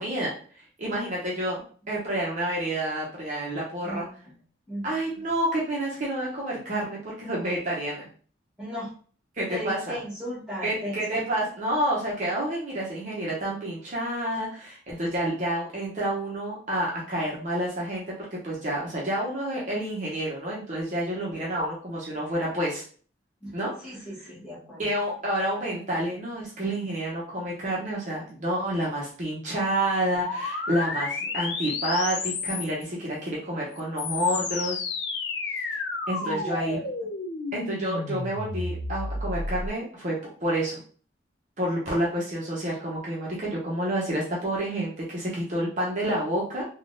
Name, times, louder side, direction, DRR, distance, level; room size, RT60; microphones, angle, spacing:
voice 1, 0.0-4.1 4.8-8.1 9.3-10.0 10.6-22.8 23.5-23.7 24.8-34.8 36.1-36.8 37.5-40.8 41.6-46.6, right 1 dB, 40° right, -5 dB, 0.7 m, -29 dB
voice 2, 3.8-4.4 4.7-4.9 8.6-8.9 9.5-11.5 23.4-23.5 23.8-24.8 36.2-36.9, equal, 5° right, -9 dB, 1.2 m, -37 dB
sound 1, 30.2-32.9 33.7-39.7, left 3 dB, 65° left, 0.4 m, -32 dB
3.6 x 2.3 x 2.5 m, 0.43 s
head